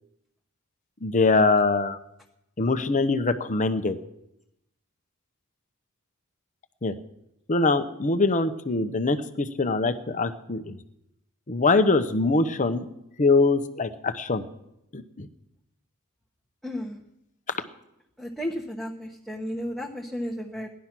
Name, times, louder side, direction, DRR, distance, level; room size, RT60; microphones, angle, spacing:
voice 1, 1.0-2.0 2.6-4.0 6.8-6.9 7.5-10.8 11.5-12.8 13.2-14.4 14.9-15.3 17.5-17.6, left 3 dB, 35° left, 9 dB, 0.8 m, -23 dB
voice 2, 16.6-17.0 18.2-20.7, equal, ahead, -3 dB, 1.1 m, -33 dB
17.5 x 11.5 x 6.0 m, 0.82 s
head